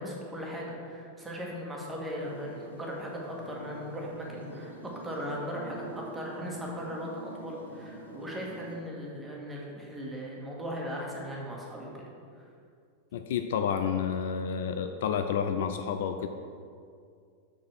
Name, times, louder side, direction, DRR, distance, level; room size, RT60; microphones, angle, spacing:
voice 1, 0.0-12.1, equal, 10° right, -3 dB, 1.8 m, -38 dB
sound 1, 2.2-8.8, right 1 dB, 80° right, 1.2 m, -46 dB
voice 2, 13.1-16.3, left 7 dB, 55° left, 7 dB, 0.4 m, -30 dB
6.1 x 5.9 x 5.8 m, 2.3 s
figure-of-eight pair, 90°, 0 cm